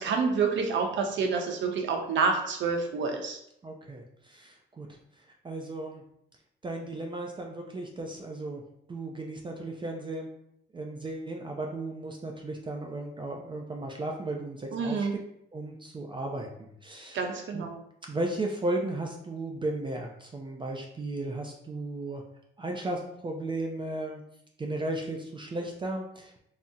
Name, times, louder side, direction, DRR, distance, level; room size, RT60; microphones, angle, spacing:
voice 1, 0.0-3.4 14.7-15.1 17.1-17.8, right 5 dB, 70° right, 3 dB, 0.6 m, -28 dB
voice 2, 3.6-6.0 6.6-8.6 8.9-10.3 10.7-15.1 15.5-17.2 17.5-17.7 18.0-22.2 22.6-24.2 24.6-26.4, right 2 dB, 25° right, 1 dB, 0.4 m, -35 dB
2.7 x 2.0 x 3.5 m, 0.76 s
cardioid pair, 90°, 20 cm